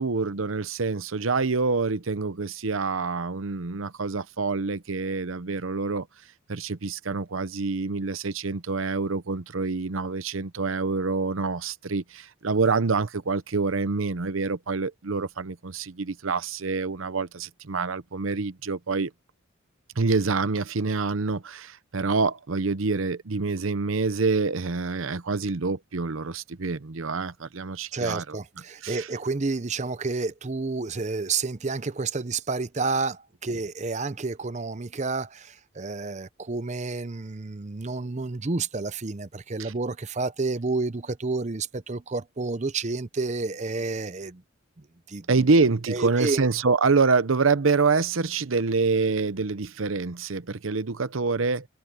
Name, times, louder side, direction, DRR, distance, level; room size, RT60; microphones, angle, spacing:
voice 1, 0.0-6.1 6.5-19.1 20.0-28.4 28.8-29.1 39.6-39.7 45.3-51.6, right 4 dB, 80° right, 0.8 m, -26 dB
voice 2, 27.9-44.4 44.8-45.4 45.9-46.5, right 3 dB, 35° right, 0.7 m, -30 dB
head